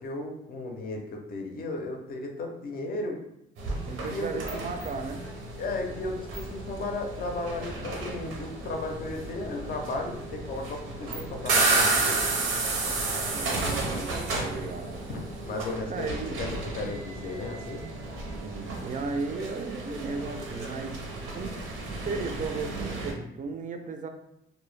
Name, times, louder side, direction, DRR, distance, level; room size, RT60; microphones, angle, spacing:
voice 1, 0.0-3.2 4.1-4.4 5.6-12.2 15.1-16.0 16.4-16.5 16.7-17.9, left 2 dB, 50° left, 2 dB, 0.5 m, -35 dB
sound 1, 3.6-23.1, right 3 dB, 85° right, 0.6 m, -32 dB
voice 2, 3.9-5.2 12.8-13.0 13.2-14.1 14.4-15.0 15.9-16.4 18.4-21.0 21.3-21.5 21.8-24.1, right 4 dB, 40° right, 5 dB, 0.4 m, -35 dB
2.0 x 2.0 x 3.2 m, 0.81 s
cardioid pair, 90°, 20 cm